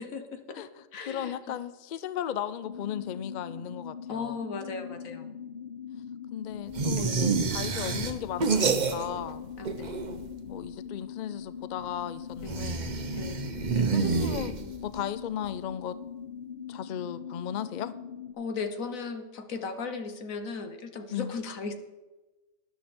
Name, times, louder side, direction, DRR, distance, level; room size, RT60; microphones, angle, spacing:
voice 1, 0.0-1.4 4.1-5.3 7.0-7.2 9.6-10.1 12.4-12.7 13.2-13.5 14.4-14.7 15.0-15.1 18.4-21.7, left 4 dB, 80° left, 7 dB, 1.5 m, -37 dB
voice 2, 1.1-4.4 6.3-9.5 10.5-13.0 13.9-14.5 14.8-16.0 16.7-17.9 21.1-21.3, left 9 dB, 65° left, 15 dB, 0.4 m, -36 dB
sound 1, 2.6-18.3, left 7 dB, 40° left, 1.0 m, -42 dB
sound 2, 6.7-9.3 9.6-10.4 12.4-14.9, right 5 dB, 40° right, 0.8 m, -28 dB
12.5 x 10.5 x 4.3 m, 1.1 s
omnidirectional pair, 1.4 m